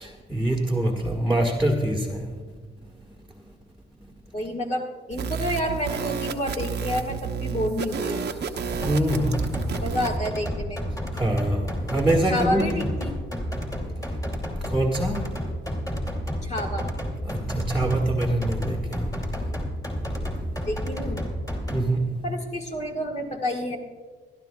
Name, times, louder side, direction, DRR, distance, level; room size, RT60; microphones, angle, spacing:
voice 1, 0.0-2.3 8.8-9.3 11.1-12.8 14.7-15.2 17.3-19.0 21.7-22.0, right 1 dB, ahead, -3 dB, 1.5 m, -24 dB
voice 2, 4.3-8.3 9.8-10.8 12.3-13.2 16.4-16.9 20.6-21.2 22.2-23.8, equal, 35° left, 1 dB, 1.6 m, -29 dB
sound 1, 5.1-10.2, right 6 dB, 60° right, 0.9 m, -31 dB
sound 2, 8.7-21.8, equal, 15° left, 2.6 m, -31 dB
23.0 x 12.5 x 2.3 m, 1.4 s
cardioid pair, 90°, 20 cm